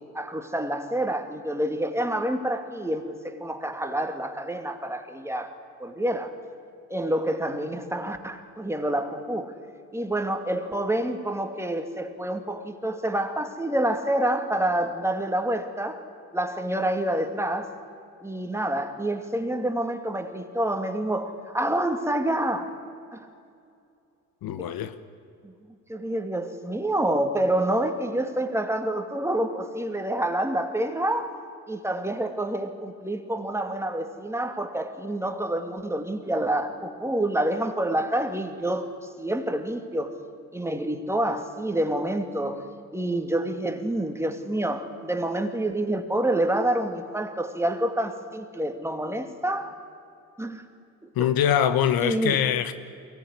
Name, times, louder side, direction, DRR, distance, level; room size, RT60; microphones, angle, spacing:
voice 1, 0.1-5.5 5.8-6.3 6.9-9.5 9.9-16.0 16.3-17.7 18.2-22.7 23.1-23.3 24.6-24.7 25.4-25.5 25.9-31.3 31.7-38.9 39.2-40.2 40.5-42.6 42.9-49.7 50.4-50.7 51.0-51.3 52.0-52.4, right 1 dB, 5° right, 2.6 m, -27 dB
voice 2, 24.4-25.0 51.1-52.7, left 9 dB, 65° left, 1.2 m, -23 dB
22.5 x 18.0 x 10.0 m
hypercardioid pair, 70°, 39 cm